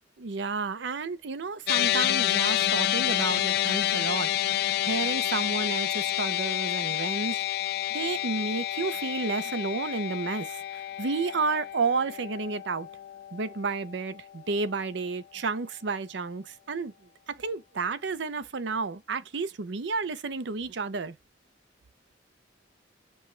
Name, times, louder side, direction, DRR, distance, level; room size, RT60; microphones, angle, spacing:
voice 1, 0.2-4.3 4.6-7.4 7.9-12.9 13.3-16.9 17.3-21.1, right 4 dB, 65° right, 0.6 m, -31 dB
sound 1, 1.7-14.1, left 13 dB, 55° left, 0.3 m, -29 dB
5.4 x 2.2 x 3.1 m
head